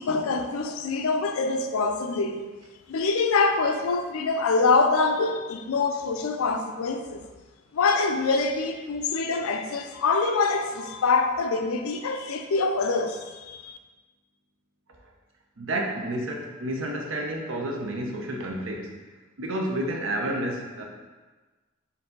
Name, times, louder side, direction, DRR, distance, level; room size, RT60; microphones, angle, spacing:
voice 1, 0.0-2.5 2.9-7.2 7.7-13.8, left 4 dB, 90° left, 0.4 m, -25 dB
voice 2, 15.6-18.9 19.4-20.8, right 1 dB, 65° right, 0.6 m, -30 dB
4.5 x 2.7 x 3.8 m
head